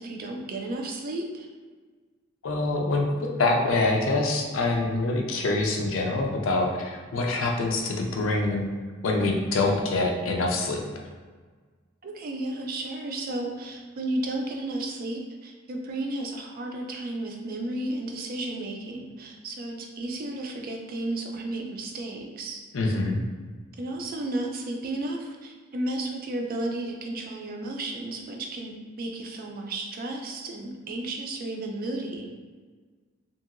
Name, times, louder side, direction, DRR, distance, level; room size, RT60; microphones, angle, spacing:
voice 1, 0.0-1.5 12.0-22.6 23.8-32.3, right 2 dB, 45° right, 2 dB, 0.4 m, -33 dB
voice 2, 2.4-8.7 9.0-10.8 22.7-23.2, left 2 dB, 70° left, 2 dB, 0.5 m, -25 dB
2.9 x 2.7 x 2.4 m, 1.4 s
head